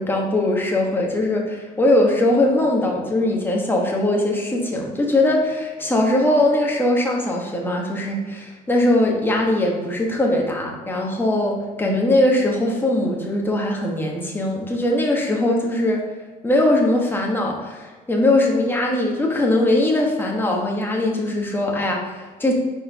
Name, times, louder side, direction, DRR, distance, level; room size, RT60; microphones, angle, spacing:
voice 1, 0.0-16.0 16.4-22.5, left 1 dB, 10° left, -1 dB, 1.4 m, -20 dB
4.8 x 4.5 x 5.2 m, 1.3 s
cardioid pair, 110°, 17 cm